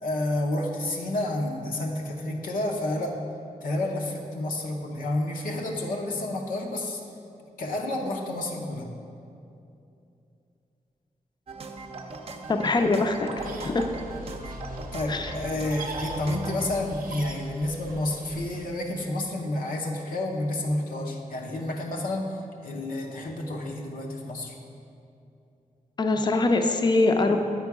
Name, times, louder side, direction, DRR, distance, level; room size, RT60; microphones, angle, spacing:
voice 1, 0.0-3.2 3.6-7.0 7.6-8.9 14.4-14.6 14.9-24.5, left 1 dB, 85° left, 0 dB, 0.7 m, -30 dB
sound 1, 11.5-16.7, right 3 dB, 45° right, 0.5 m, -39 dB
voice 2, 12.5-13.9 15.1-15.3 26.0-27.4, left 3 dB, 30° left, 5 dB, 0.5 m, -23 dB
sound 2, 13.4-18.7, right 1 dB, 85° right, 0.6 m, -41 dB
8.7 x 4.5 x 4.7 m, 2.7 s
wide cardioid pair, 125°, 14 cm